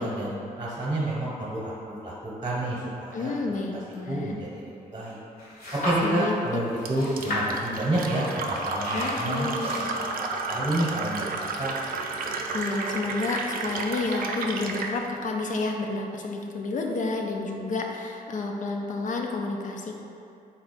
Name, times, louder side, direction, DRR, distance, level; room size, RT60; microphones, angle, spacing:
voice 1, 0.0-2.1 2.4-3.3 4.1-5.2 5.7-11.7, right 1 dB, 25° right, -6 dB, 0.9 m, -29 dB
voice 2, 3.1-4.3 6.0-6.4 8.9-9.9 12.5-20.0, left 3 dB, 55° left, 2 dB, 0.5 m, -30 dB
sound 1, 5.4-6.4 6.7-11.8, left 1 dB, 70° left, 1.2 m, -35 dB
Fill (with liquid), 6.8-15.0, right 3 dB, 65° right, 0.4 m, -32 dB
4.0 x 2.3 x 4.1 m, 2.6 s
cardioid pair, 75°, 16 cm